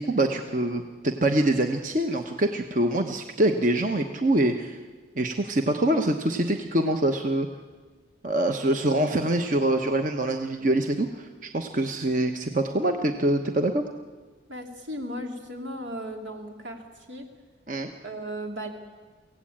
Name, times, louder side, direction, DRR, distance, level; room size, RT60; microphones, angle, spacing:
voice 1, 0.0-4.8 5.2-7.5 8.2-13.8 17.7-17.9, right 1 dB, 45° right, 5 dB, 1.0 m, -25 dB
voice 2, 14.5-17.3 18.0-18.7, equal, 80° right, 3 dB, 3.0 m, -36 dB
24.0 x 16.5 x 8.7 m, 1.4 s
head